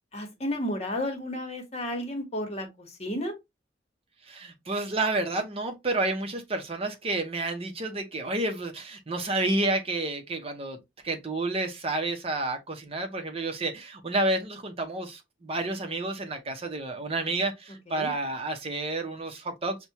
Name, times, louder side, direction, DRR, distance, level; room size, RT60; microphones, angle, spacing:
voice 1, 0.1-3.3 17.9-18.1, left 1 dB, 35° left, 1.2 m, -32 dB
voice 2, 4.3-10.8 11.0-19.8, right 2 dB, 35° right, 0.7 m, -30 dB
5.9 x 2.2 x 2.8 m
head